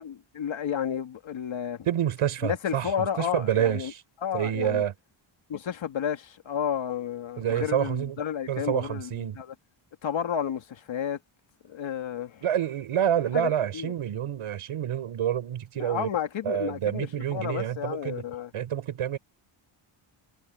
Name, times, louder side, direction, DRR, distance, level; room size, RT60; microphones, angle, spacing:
voice 1, 0.0-1.9 2.4-3.9 4.2-4.8 5.5-9.5 10.0-11.2 11.6-12.4 13.3-13.9 15.8-18.5, left 8 dB, 65° left, 2.6 m, -32 dB
voice 2, 1.9-2.9 3.2-4.0 4.3-4.9 7.4-8.2 8.5-9.4 12.4-16.1 16.4-18.2 18.5-19.2, right 10 dB, 85° right, 5.8 m, -28 dB
wide cardioid pair, 135°, 50 cm